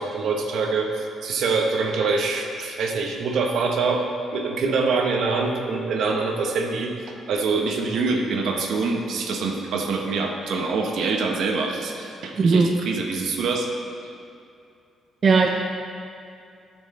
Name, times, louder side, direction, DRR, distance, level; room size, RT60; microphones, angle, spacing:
voice 1, 0.0-6.9 7.3-13.7, right 4 dB, 75° right, 2 dB, 1.0 m, -25 dB
voice 2, 12.4-12.7 15.2-15.5, right 4 dB, 45° right, 2 dB, 0.6 m, -17 dB
10.0 x 6.3 x 4.3 m, 2.4 s
cardioid pair, 90°, 0 cm